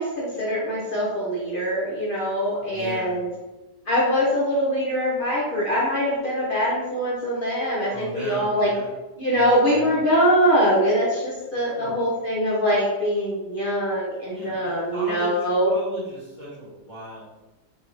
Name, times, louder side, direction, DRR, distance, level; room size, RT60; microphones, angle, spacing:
voice 1, 0.0-3.3 3.9-8.7 9.2-15.7, equal, 60° left, -6 dB, 0.5 m, -23 dB
voice 2, 2.7-3.2 7.9-8.9 9.3-10.1 11.7-12.0 14.3-15.4 15.6-17.3, equal, 30° left, -8 dB, 1.0 m, -37 dB
3.9 x 2.6 x 2.9 m, 1.1 s
omnidirectional pair, 1.9 m